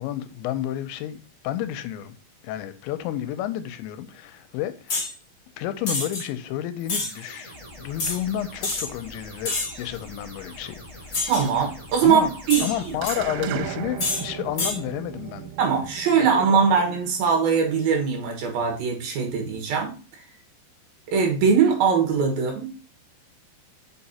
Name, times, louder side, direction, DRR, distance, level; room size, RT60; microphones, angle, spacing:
voice 1, 0.0-2.1 2.4-5.0 5.6-11.3 12.0-12.3 12.6-15.5 16.4-16.8, left 12 dB, 85° left, 3.0 m, -31 dB
sound 1, 4.9-5.1 5.9-6.2 6.9-7.1 8.0-8.2 8.6-8.9 9.4-9.8 11.1-11.5 12.5-13.2 14.0-14.2 14.6-14.8, left 3 dB, 35° left, 1.5 m, -27 dB
sound 2, 6.8-13.6, equal, 15° right, 1.1 m, -44 dB
voice 2, 11.3-12.9 13.5-13.6 15.6-20.3 21.1-22.9, right 6 dB, 65° right, 3.0 m, -22 dB
sound 3, 13.0-17.6, right 10 dB, 90° right, 2.9 m, -36 dB
5.8 x 5.8 x 4.2 m
omnidirectional pair, 5.1 m